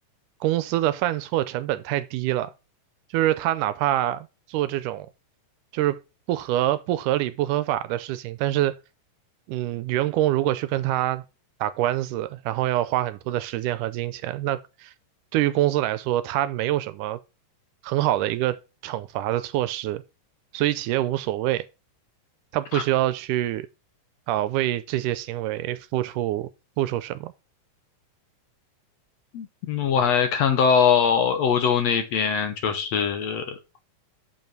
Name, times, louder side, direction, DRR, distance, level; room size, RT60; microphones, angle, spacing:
voice 1, 0.4-2.5 3.1-5.1 5.7-6.0 6.3-8.8 9.5-11.2 11.6-14.9 15.3-17.2 17.8-20.0 20.5-21.7 22.5-23.7 24.3-26.5 26.8-27.3, right 14 dB, 80° right, 2.0 m, -25 dB
voice 2, 29.3-33.6, left 7 dB, 65° left, 1.8 m, -22 dB
7.1 x 5.4 x 6.0 m
omnidirectional pair, 3.8 m